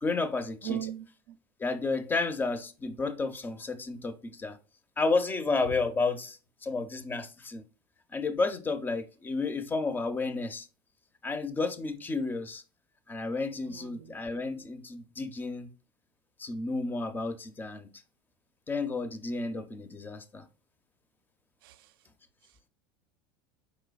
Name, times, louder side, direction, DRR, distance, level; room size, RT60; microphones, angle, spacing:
voice 1, 0.0-0.8 1.6-4.6 5.0-7.6 8.1-10.7 11.2-12.6 13.1-15.7 16.4-17.9 18.7-20.5, left 3 dB, 15° left, 0.5 m, -31 dB
voice 2, 0.6-1.4 13.7-14.2 21.6-21.9, right 10 dB, 80° right, 0.4 m, -39 dB
4.5 x 4.0 x 2.3 m
supercardioid pair, 110°, 12 cm